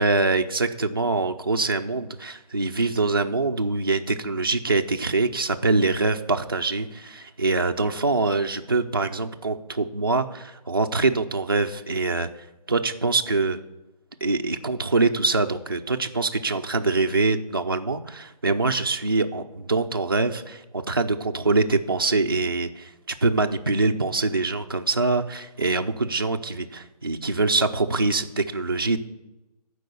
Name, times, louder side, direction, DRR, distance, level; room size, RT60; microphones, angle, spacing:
voice 1, 0.0-12.3 12.7-13.6 14.2-29.0, right 3 dB, 35° right, 5 dB, 0.4 m, -24 dB
12.0 x 4.6 x 6.8 m, 0.99 s
hypercardioid pair, 180°, 21 cm